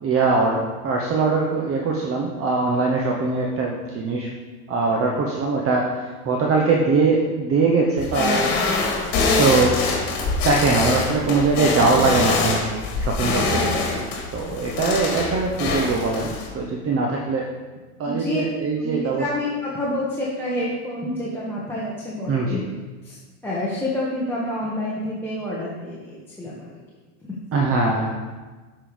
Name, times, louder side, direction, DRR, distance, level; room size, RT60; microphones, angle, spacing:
voice 1, 0.0-4.3 4.7-8.5 9.4-9.8 10.4-13.8 14.3-17.5 18.0-19.3 22.3-22.6 27.5-28.1, right 3 dB, 30° right, 0 dB, 1.0 m, -22 dB
sound 1, 8.0-16.5, left 3 dB, 45° left, 2.3 m, -24 dB
voice 2, 18.0-18.4 18.8-22.6 23.0-23.2 23.4-26.7, left 1 dB, 5° left, -7 dB, 1.4 m, -28 dB
7.6 x 5.5 x 5.0 m, 1.3 s
supercardioid pair, 110°, 46 cm